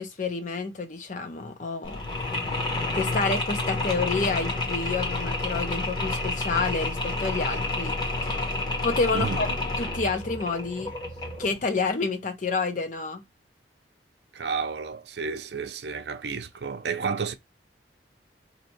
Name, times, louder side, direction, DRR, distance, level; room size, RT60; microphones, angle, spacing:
voice 1, 0.0-2.0 2.9-7.9 8.2-8.3 8.8-9.5 9.8-10.9 11.4-13.2, left 4 dB, 45° left, 0.7 m, -29 dB
Mechanisms, 1.8-11.6, left 2 dB, 25° left, 1.0 m, -29 dB
voice 2, 9.1-9.6 14.3-17.3, right 5 dB, 70° right, 0.6 m, -31 dB
2.8 x 2.6 x 4.3 m
head